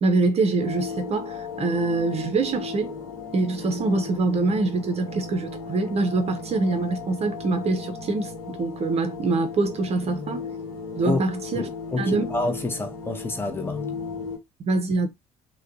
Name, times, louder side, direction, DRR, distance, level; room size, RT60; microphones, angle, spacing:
voice 1, 0.0-3.0 3.3-10.5 11.0-11.7 12.0-12.2 14.6-15.1, right 3 dB, 35° right, 0.6 m, -24 dB
sound 1, 0.6-14.4, left 4 dB, 75° left, 0.9 m, -36 dB
voice 2, 11.5-13.8, left 2 dB, 10° left, 0.8 m, -28 dB
3.4 x 2.2 x 2.6 m
figure-of-eight pair, 50°, 18 cm